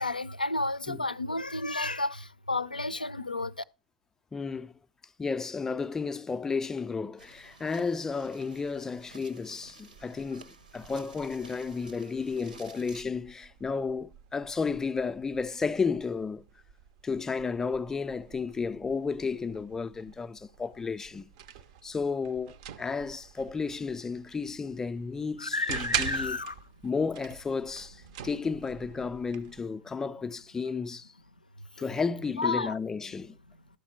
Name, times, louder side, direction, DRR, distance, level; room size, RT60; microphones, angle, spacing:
voice 1, 0.0-3.5 25.4-26.5 32.4-32.8, left 2 dB, 85° left, 0.4 m, -31 dB
voice 2, 4.3-4.7 5.2-16.4 17.0-21.3 21.8-26.4 26.8-31.1 31.8-33.4, left 5 dB, 10° left, 0.3 m, -33 dB
sound 1, 7.2-13.0, right 4 dB, 75° right, 0.9 m, -53 dB
sound 2, 9.9-29.7, right 9 dB, 45° right, 0.5 m, -44 dB
12.0 x 4.2 x 4.4 m
figure-of-eight pair, 95°, 5 cm